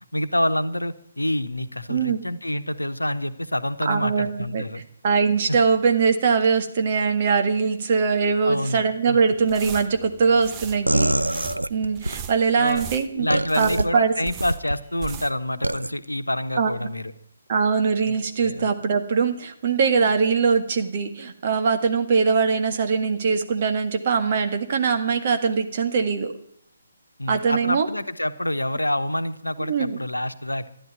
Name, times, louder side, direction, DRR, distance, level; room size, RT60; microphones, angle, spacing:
voice 1, 0.1-4.8 5.5-5.6 8.4-9.2 12.6-12.8 13.1-17.1 18.1-18.2 18.4-18.7 27.2-30.7, left 1 dB, 80° left, 10 dB, 1.2 m, -27 dB
voice 2, 1.9-2.2 3.9-11.2 11.7-13.3 13.6-14.1 16.6-16.9 17.5-26.3 27.3-27.9 29.7-30.0, right 5 dB, 35° right, 6 dB, 1.7 m, -22 dB
sound 1, 9.4-15.5 15.7-15.8, right 8 dB, 15° right, 0.9 m, -39 dB
sound 2, 10.9-12.2 13.3-13.8 14.4-14.8 15.6-15.9, right 1 dB, 80° right, 0.6 m, -24 dB
14.0 x 11.0 x 9.4 m, 0.69 s
figure-of-eight pair, 140°, 0 cm